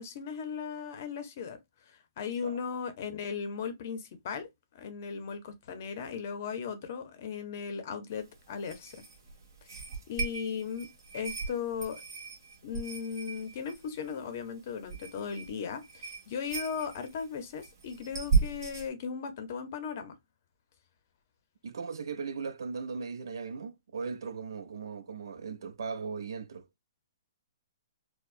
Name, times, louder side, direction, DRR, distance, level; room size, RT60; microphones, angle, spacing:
voice 1, 0.0-1.6 2.2-4.5 4.7-9.0 10.1-10.9 11.1-12.0 12.6-20.1, left 6 dB, 35° left, 0.6 m, -37 dB
sound 1, 8.1-18.9, right 5 dB, 55° right, 1.5 m, -36 dB
voice 2, 21.6-26.7, right 5 dB, 80° right, 0.5 m, -38 dB
4.6 x 2.1 x 2.4 m
hypercardioid pair, 175°, 2 cm